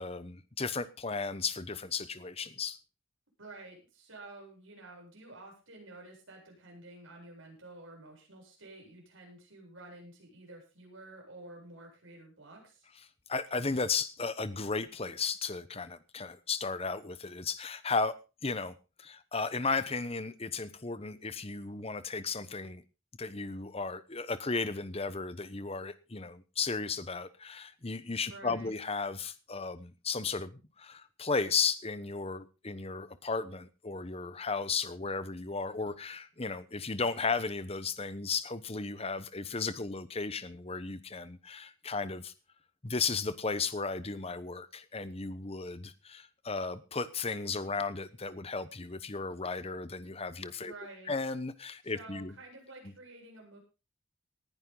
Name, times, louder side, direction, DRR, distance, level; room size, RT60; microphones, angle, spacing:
voice 1, 0.0-2.8 13.3-18.2 18.4-22.8 23.2-42.3 42.8-50.7 51.1-52.3, left 4 dB, 30° left, 14 dB, 1.0 m, -35 dB
voice 2, 3.4-12.9 28.3-28.7 50.6-51.1 51.8-53.6, right 2 dB, 75° right, 0 dB, 8.0 m, -50 dB
19.0 x 11.0 x 3.9 m, 0.31 s
head